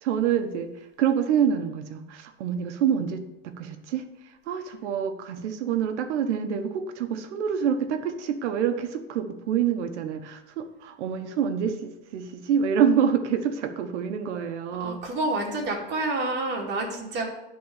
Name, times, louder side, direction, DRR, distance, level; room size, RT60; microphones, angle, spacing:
voice 1, 0.0-0.7 1.0-4.0 4.5-15.0, right 8 dB, 80° right, 7 dB, 1.3 m, -26 dB
voice 2, 14.8-17.3, right 2 dB, 30° right, -1 dB, 2.5 m, -28 dB
10.5 x 4.2 x 7.2 m, 0.92 s
supercardioid pair, 140°, 35 cm